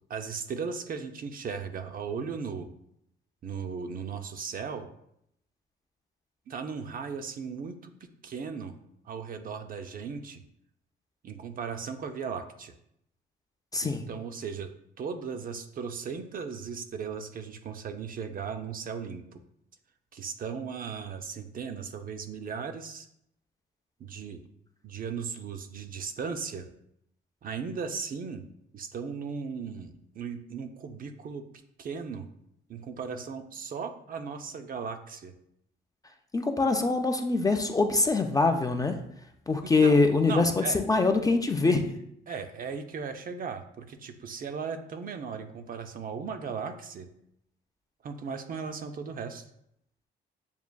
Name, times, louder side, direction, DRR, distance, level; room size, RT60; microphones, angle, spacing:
voice 1, 0.1-2.7 3.4-4.9 6.5-8.8 9.0-10.4 11.2-12.7 13.8-14.7 15.0-19.4 20.1-23.1 24.0-24.4 24.8-26.7 27.4-28.4 28.7-31.4 31.8-32.3 32.7-35.3 39.6-40.8 42.3-47.1 48.0-49.4, right 6 dB, 45° right, 7 dB, 0.4 m, -37 dB
voice 2, 13.7-14.0 36.3-39.0 39.5-41.9, left 3 dB, 20° left, 5 dB, 0.3 m, -24 dB
7.0 x 2.4 x 2.2 m, 0.74 s
cardioid pair, 90°, 20 cm